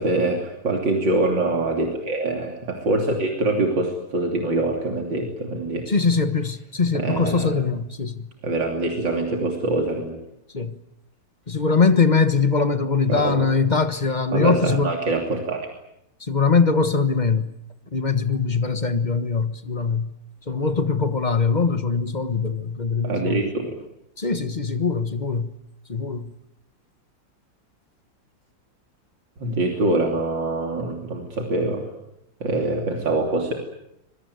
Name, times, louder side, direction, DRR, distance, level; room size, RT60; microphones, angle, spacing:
voice 1, 0.0-5.9 6.9-7.5 8.4-10.1 13.1-13.4 14.3-15.7 23.0-23.7 29.4-31.9 32.4-33.5, right 2 dB, 80° right, 3.7 m, -24 dB
voice 2, 5.9-8.3 10.5-10.8 11.5-15.0 16.2-17.5 17.9-20.1 20.5-23.4 24.2-25.5 25.9-26.3, left 4 dB, 25° left, 1.2 m, -22 dB
26.5 x 21.5 x 9.5 m
omnidirectional pair, 2.0 m